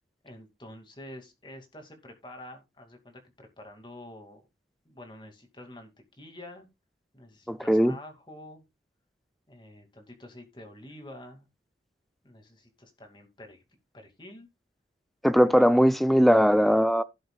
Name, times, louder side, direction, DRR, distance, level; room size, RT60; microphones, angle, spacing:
voice 1, 0.2-4.4 4.8-6.7 7.1-8.6 9.5-11.5 12.2-13.6 13.9-14.5 15.5-15.7, left 1 dB, 25° left, 2.4 m, -47 dB
voice 2, 7.5-8.0 15.2-17.0, equal, ahead, 0.6 m, -20 dB
16.5 x 6.5 x 2.4 m
head